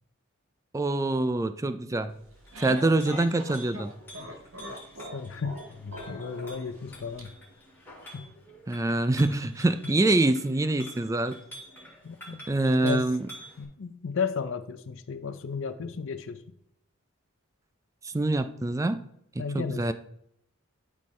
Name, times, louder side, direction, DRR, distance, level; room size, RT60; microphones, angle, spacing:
voice 1, 0.7-2.1 2.6-3.9 8.7-11.4 12.5-13.2 18.0-19.0 19.5-19.9, right 2 dB, 15° right, 11 dB, 0.3 m, -25 dB
sound 1, 2.1-7.2, equal, 70° right, 1.2 m, -42 dB
Chink clink, 2.3-13.6, equal, 10° left, 2.5 m, -48 dB
voice 2, 5.1-7.3 8.1-8.3 9.8-10.0 12.0-12.4 12.8-13.1 13.6-16.4 19.4-19.9, left 5 dB, 60° left, 10 dB, 0.5 m, -34 dB
12.0 x 4.3 x 3.2 m, 0.75 s
head